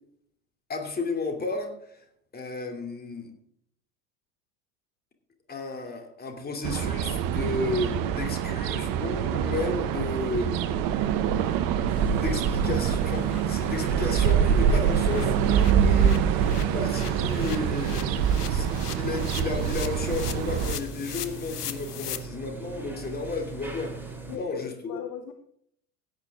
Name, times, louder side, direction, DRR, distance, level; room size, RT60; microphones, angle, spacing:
voice 1, 0.7-2.0 2.3-3.3 5.5-10.6 12.1-16.4 16.7-23.9 24.3-25.0, left 3 dB, 20° left, 4 dB, 2.9 m, -33 dB
sound 1, 6.6-20.8, right 8 dB, 45° right, 1.1 m, -25 dB
sound 2, 9.2-9.3 9.6-9.7 10.1-10.2 10.5-10.6 11.0-11.1 11.4-11.6 11.9-12.0 12.3-22.2, left 10 dB, 75° left, 1.1 m, -41 dB
sound 3, 11.9-24.4, right 4 dB, 5° right, 3.2 m, -40 dB
voice 2, 24.3-25.3, left 9 dB, 40° left, 8 dB, 1.2 m, -37 dB
16.5 x 9.2 x 3.7 m, 0.68 s
figure-of-eight pair, 75°, 47 cm